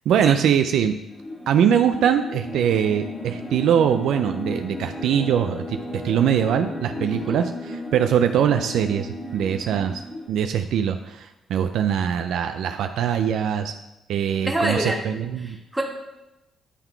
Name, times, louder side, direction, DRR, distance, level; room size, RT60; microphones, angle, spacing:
voice 1, 0.1-0.9 1.5-10.0 10.3-13.7 14.1-15.6, right 8 dB, 80° right, 7 dB, 0.4 m, -22 dB
sound 1, 1.1-10.3, left 1 dB, 30° left, 1.6 m, -34 dB
voice 2, 7.1-7.4 14.4-15.0 15.4-15.8, right 1 dB, 5° right, -1 dB, 1.6 m, -26 dB
9.9 x 3.8 x 4.5 m, 0.96 s
cardioid pair, 90°, 0 cm